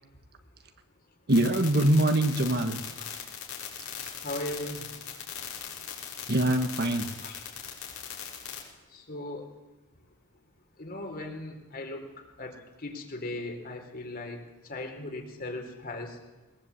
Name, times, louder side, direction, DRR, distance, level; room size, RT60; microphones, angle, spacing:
sound 1, 1.3-8.6, left 9 dB, 70° left, 5.8 m, -39 dB
voice 1, 1.3-2.8 6.3-7.1, right 1 dB, 45° right, 7 dB, 1.6 m, -23 dB
voice 2, 4.2-4.9 6.8-7.5 8.9-9.5 10.8-14.4 14.6-16.2, left 2 dB, 40° left, 3 dB, 3.8 m, -38 dB
21.5 x 20.5 x 8.3 m, 1.1 s
head